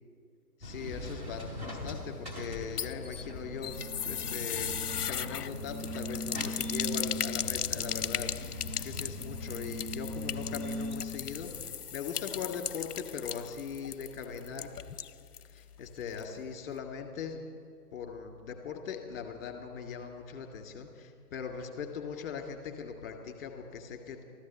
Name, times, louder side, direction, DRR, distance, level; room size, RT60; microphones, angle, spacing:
voice 1, 0.6-14.7 15.5-17.4 17.9-24.2, left 6 dB, 35° left, 3 dB, 2.1 m, -40 dB
sound 1, 0.6-11.7, left 1 dB, 15° right, 2.5 m, -39 dB
sound 2, 2.5-15.5 15.8-15.9 16.2-16.3, left 9 dB, 70° left, 0.6 m, -37 dB
14.0 x 13.0 x 7.3 m, 2.1 s
figure-of-eight pair, 140°, 48 cm